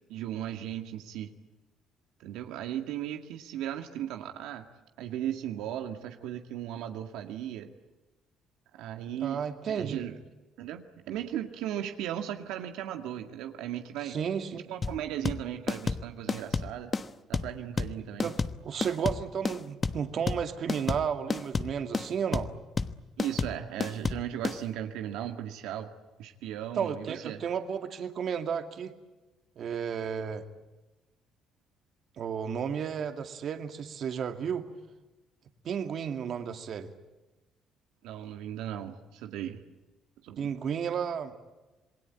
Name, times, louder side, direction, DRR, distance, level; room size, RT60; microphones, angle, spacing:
voice 1, 0.1-1.3 2.2-4.6 5.0-7.7 8.7-10.2 10.6-14.2 14.7-16.9 17.3-18.3 23.2-25.9 26.2-27.4 38.0-39.6 40.2-40.5, right 11 dB, 85° right, 5 dB, 2.0 m, -36 dB
voice 2, 9.2-10.0 14.0-14.7 18.2-18.4 18.6-22.5 26.8-28.9 29.6-30.4 32.2-34.7 35.6-36.9 40.4-41.3, right 7 dB, 55° right, 6 dB, 2.3 m, -33 dB
sound 1, 14.8-24.6, left 4 dB, 30° left, 1.2 m, -31 dB
27.5 x 20.5 x 9.1 m, 1.1 s
cardioid pair, 105°, 0 cm